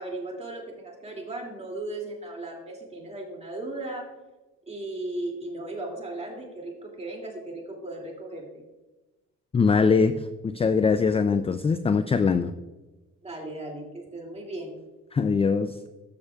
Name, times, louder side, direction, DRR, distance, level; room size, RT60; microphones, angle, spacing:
voice 1, 0.0-4.1 4.7-8.6 13.2-14.8, right 2 dB, 20° right, -1 dB, 2.4 m, -36 dB
voice 2, 9.5-12.5 15.1-15.8, left 5 dB, 20° left, 11 dB, 0.3 m, -22 dB
13.5 x 6.9 x 2.3 m, 1.1 s
cardioid pair, 90°, 30 cm